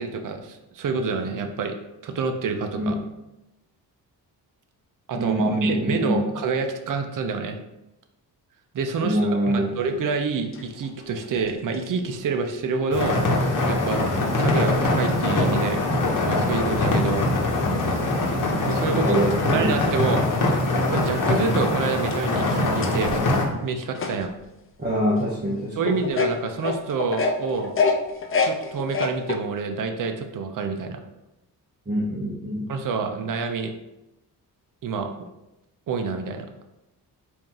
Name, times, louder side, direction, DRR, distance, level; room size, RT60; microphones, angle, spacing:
voice 1, 0.0-1.8 2.0-3.0 5.1-7.6 8.7-14.0 14.4-15.8 16.2-17.2 18.7-19.1 19.5-20.3 20.9-24.3 25.7-27.7 28.4-31.0 32.7-33.7 34.8-35.3 35.9-36.5, right 4 dB, 55° right, 6 dB, 0.6 m, -28 dB
voice 2, 5.1-6.3 9.0-9.8 18.8-19.8 24.8-25.8 31.9-32.7, equal, 25° right, -5 dB, 0.9 m, -24 dB
sound 1, 10.5-11.8 12.5-12.6 14.5-14.6 15.7-15.8 16.5-16.6 19.9-20.0 20.8-20.9 21.4-21.5 21.9-24.6 25.1-25.2 25.9-29.3, left 4 dB, 35° left, 0.5 m, -27 dB
sound 2, 12.9-23.4, left 2 dB, 50° left, 1.0 m, -23 dB
4.2 x 2.6 x 3.8 m, 0.93 s
cardioid pair, 90°, 40 cm